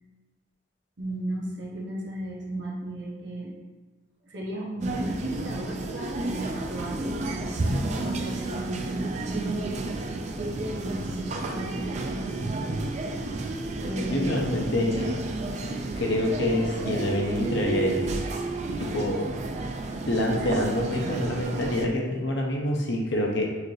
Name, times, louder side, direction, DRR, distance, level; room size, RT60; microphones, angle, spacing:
voice 1, 1.0-3.5 4.2-9.8 10.3-12.6 13.8-14.3, right 1 dB, 65° right, -3 dB, 1.0 m, -35 dB
sound 1, 4.8-21.9, right 2 dB, 35° right, 0.3 m, -31 dB
voice 2, 14.0-15.2 16.0-18.1 18.8-19.3 20.1-23.5, left 1 dB, 65° left, 0 dB, 0.8 m, -26 dB
6.4 x 2.6 x 3.2 m, 1.3 s
head